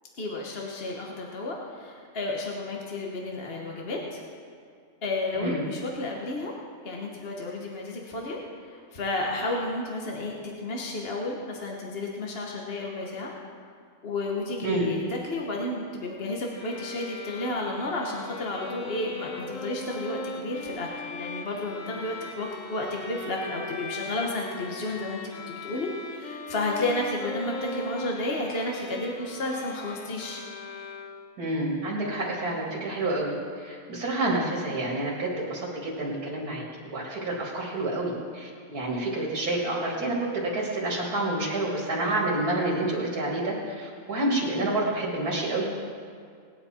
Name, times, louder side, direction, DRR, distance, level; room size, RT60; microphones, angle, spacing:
voice 1, 0.2-4.2 5.0-6.5 6.8-13.3 14.0-25.2 25.5-30.4, left 2 dB, 45° left, -1 dB, 1.4 m, -32 dB
sound 1, 16.5-31.5, left 2 dB, 60° left, 1.4 m, -39 dB
voice 2, 31.4-45.7, right 2 dB, 80° right, -4 dB, 2.7 m, -29 dB
20.0 x 9.8 x 4.3 m, 2.2 s
omnidirectional pair, 1.6 m